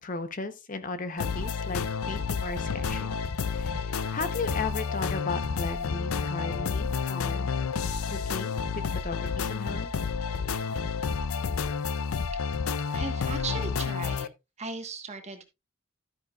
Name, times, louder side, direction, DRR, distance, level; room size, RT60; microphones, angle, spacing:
voice 1, 0.0-3.2 3.5-7.5 8.1-9.9 12.1-12.2, left 3 dB, 40° left, 0.8 m, -36 dB
sound 1, 1.2-14.3, left 5 dB, 80° left, 0.5 m, -30 dB
voice 2, 12.9-14.3 14.6-15.4, right 4 dB, 30° right, 1.3 m, -37 dB
12.5 x 8.9 x 2.4 m
head